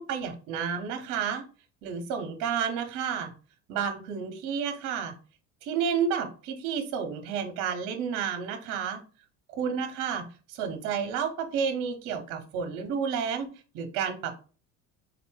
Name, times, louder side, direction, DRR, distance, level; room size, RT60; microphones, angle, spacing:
voice 1, 0.0-1.4 1.8-3.3 3.7-5.1 5.6-9.0 9.5-14.4, right 7 dB, 55° right, 6 dB, 0.8 m, -31 dB
3.9 x 2.5 x 4.6 m, 0.36 s
cardioid pair, 150°, 37 cm